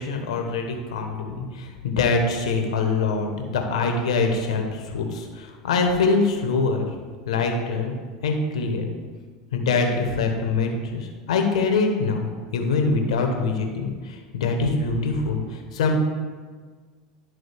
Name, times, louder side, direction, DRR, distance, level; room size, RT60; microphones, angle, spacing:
voice 1, 0.0-6.9 7.3-7.9 8.2-8.9 9.5-16.0, left 4 dB, 80° left, 3 dB, 1.0 m, -24 dB
11.0 x 3.8 x 3.4 m, 1.5 s
hypercardioid pair, 90°, 3 cm